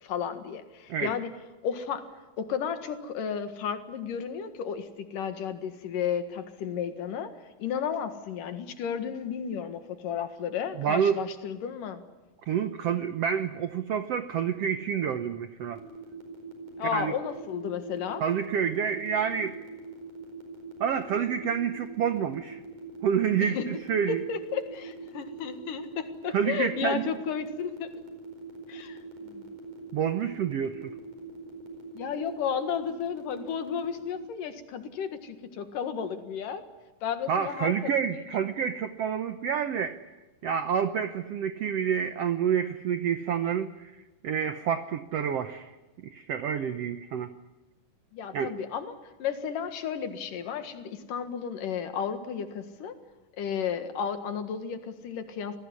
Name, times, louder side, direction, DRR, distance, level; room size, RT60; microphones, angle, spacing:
voice 1, 0.0-1.3 1.6-2.0 2.4-7.3 7.6-12.0 16.8-18.2 23.4-23.7 24.1-27.9 28.7-29.5 31.9-36.6 37.0-38.2 48.1-53.0 53.4-55.6, left 7 dB, 70° left, 8 dB, 3.2 m, -33 dB
voice 2, 10.8-11.2 12.5-15.8 16.8-17.1 18.2-19.6 20.8-22.6 23.0-24.2 26.3-27.1 29.9-30.9 37.3-40.0 40.4-43.9 44.2-45.7 46.0-47.3 48.3-48.5, right 8 dB, 75° right, 10 dB, 1.4 m, -28 dB
sound 1, 15.7-34.2, equal, 55° right, 6.2 m, -46 dB
27.0 x 19.0 x 9.7 m, 1.1 s
omnidirectional pair, 4.1 m